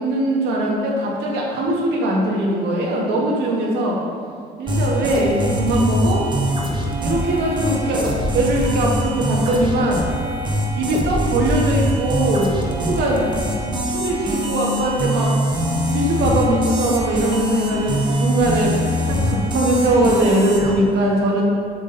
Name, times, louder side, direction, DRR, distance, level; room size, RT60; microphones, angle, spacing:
voice 1, 0.0-4.0 4.6-6.3 7.0-10.0 10.8-12.5 12.8-13.3 13.9-15.3 15.9-18.7 19.0-21.4, right 1 dB, 80° right, -3 dB, 1.7 m, -20 dB
sound 1, 4.7-20.7, equal, 25° right, 1.3 m, -23 dB
7.5 x 6.1 x 4.0 m, 2.3 s
cardioid pair, 110°, 17 cm